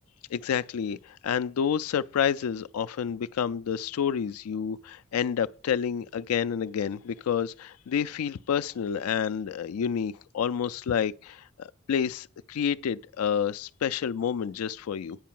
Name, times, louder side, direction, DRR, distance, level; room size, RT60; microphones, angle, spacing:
voice 1, 0.3-15.2, left 8 dB, 85° left, 0.4 m, -29 dB
9.4 x 4.6 x 7.5 m
head